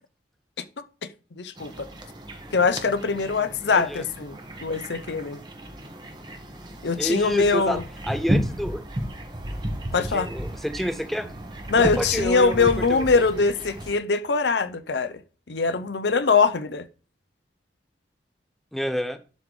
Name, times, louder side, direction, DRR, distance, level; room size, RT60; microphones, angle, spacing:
voice 1, 1.4-1.9 2.5-4.4 4.6-5.4 6.8-7.8 9.9-10.3 11.7-15.2 15.5-16.8, left 4 dB, 75° left, 0.7 m, -22 dB
sound 1, 1.6-14.0, equal, 25° right, 1.2 m, -33 dB
voice 2, 3.7-4.0 7.0-8.8 10.0-11.3 11.8-13.2 18.7-19.2, equal, ahead, 0.5 m, -29 dB
12.0 x 4.0 x 3.2 m
head